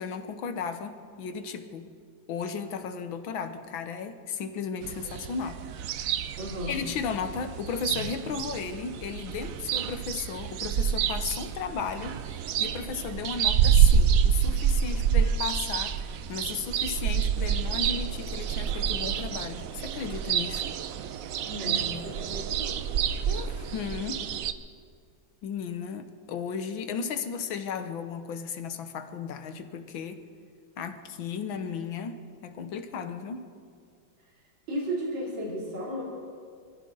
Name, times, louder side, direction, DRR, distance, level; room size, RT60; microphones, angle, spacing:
voice 1, 0.0-1.9 2.3-5.6 6.7-16.0 16.3-20.7 23.3-24.3 25.4-30.2 30.8-32.2 32.4-33.5, left 6 dB, 80° left, 9 dB, 1.8 m, -35 dB
sound 1, 4.8-24.5, right 8 dB, 85° right, 0.7 m, -28 dB
voice 2, 6.4-6.8 21.4-22.8 34.7-36.0, right 1 dB, 65° right, -4 dB, 3.8 m, -34 dB
25.5 x 14.5 x 3.9 m, 2.2 s
omnidirectional pair, 2.2 m